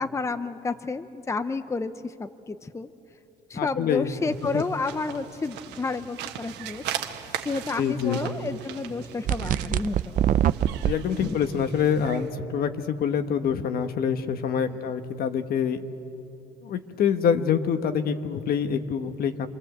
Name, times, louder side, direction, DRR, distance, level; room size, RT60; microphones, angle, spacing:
voice 1, 0.0-2.9 3.5-6.9 7.4-10.2 11.2-11.4, left 4 dB, 15° left, 11 dB, 0.7 m, -31 dB
voice 2, 3.5-4.6 7.8-8.2 10.8-15.8 16.6-19.5, left 7 dB, 60° left, 8 dB, 1.4 m, -26 dB
sound 1, 4.1-12.3, right 10 dB, 90° right, 1.6 m, -39 dB
sound 2, 9.3-10.9, right 11 dB, 55° right, 0.6 m, -23 dB
27.5 x 23.0 x 8.1 m, 2.8 s
cardioid pair, 110°, 17 cm